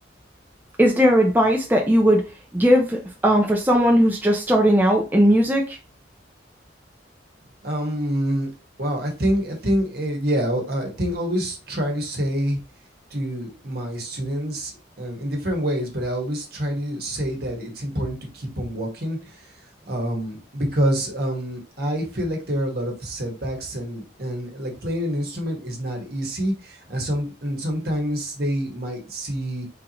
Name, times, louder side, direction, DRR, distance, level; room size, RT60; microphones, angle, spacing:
voice 1, 0.8-2.2 2.5-5.8, equal, 10° right, 0 dB, 0.6 m, -18 dB
voice 2, 7.6-8.5 8.8-12.6 13.1-19.5 19.9-29.7, equal, 55° right, 1 dB, 1.5 m, -27 dB
4.6 x 3.8 x 3.0 m, 0.31 s
head